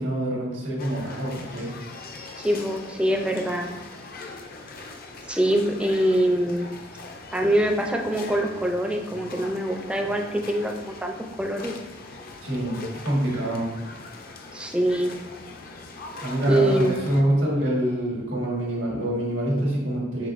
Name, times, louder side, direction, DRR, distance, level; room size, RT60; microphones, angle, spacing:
voice 1, 0.0-1.7 12.4-12.8 13.0-13.7 16.2-20.3, right 1 dB, 90° right, -4 dB, 1.5 m, -25 dB
sound 1, 0.8-17.2, left 3 dB, 50° left, 0.5 m, -41 dB
voice 2, 2.4-3.7 5.2-6.7 7.3-11.7 14.5-15.2 16.5-17.0, right 1 dB, 5° right, 2 dB, 0.4 m, -24 dB
6.0 x 3.3 x 2.5 m, 1.1 s
head